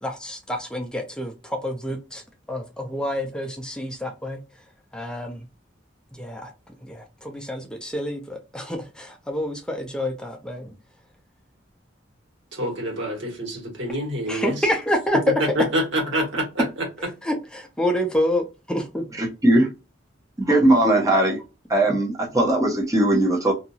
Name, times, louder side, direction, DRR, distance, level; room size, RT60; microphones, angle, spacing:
voice 1, 0.0-2.2 2.5-4.4 4.9-5.5 6.1-6.5 6.8-10.7 14.3-15.2 15.5-15.6 17.2-19.1, equal, 5° left, 0.4 m, -28 dB
voice 2, 12.5-14.5 15.5-16.6, right 1 dB, 75° right, 1.5 m, -26 dB
voice 3, 19.2-19.7 20.4-21.4 21.7-23.5, right 1 dB, 20° right, 0.8 m, -19 dB
2.8 x 2.5 x 2.7 m
head